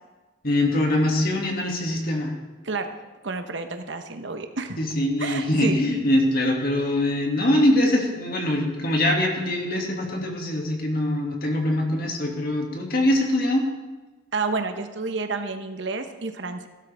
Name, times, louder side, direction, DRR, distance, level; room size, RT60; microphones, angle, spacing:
voice 1, 0.4-2.3 4.8-13.7, left 1 dB, 50° left, 0 dB, 2.3 m, -23 dB
voice 2, 3.2-4.8 5.2-5.8 14.3-16.7, right 3 dB, 60° right, 7 dB, 1.0 m, -30 dB
16.5 x 12.5 x 3.5 m, 1.2 s
head